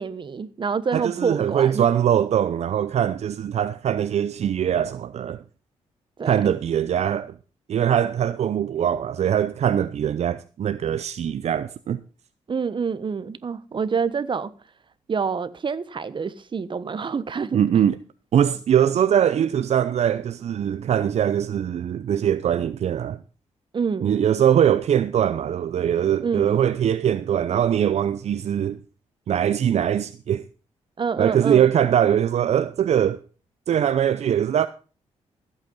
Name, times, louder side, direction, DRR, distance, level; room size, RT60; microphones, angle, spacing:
voice 1, 0.0-1.9 6.2-6.5 12.5-14.5 15.1-17.6 23.7-24.2 26.2-26.6 31.0-31.7, right 5 dB, 40° right, 1.2 m, -27 dB
voice 2, 0.9-5.4 6.3-7.3 7.7-12.0 17.5-18.0 18.3-23.2 24.0-28.8 29.3-30.4 31.2-33.2 33.7-34.7, right 9 dB, 65° right, 0.6 m, -22 dB
15.0 x 8.4 x 5.4 m
cardioid pair, 75°, 12 cm